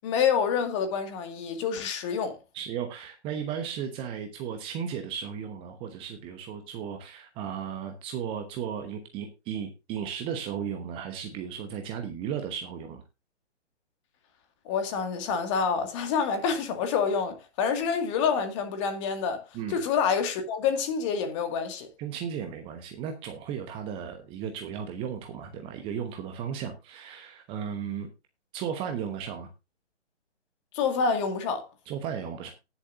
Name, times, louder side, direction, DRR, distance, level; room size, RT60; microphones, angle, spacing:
voice 1, 0.0-2.4 14.7-19.4 19.7-21.9 30.7-31.6, left 6 dB, 25° left, 2.1 m, -27 dB
voice 2, 2.5-13.0 19.5-19.8 22.0-28.1 28.5-29.5 31.9-32.5, right 8 dB, 15° right, 1.1 m, -35 dB
19.0 x 7.2 x 2.6 m
figure-of-eight pair, 135°, 35 cm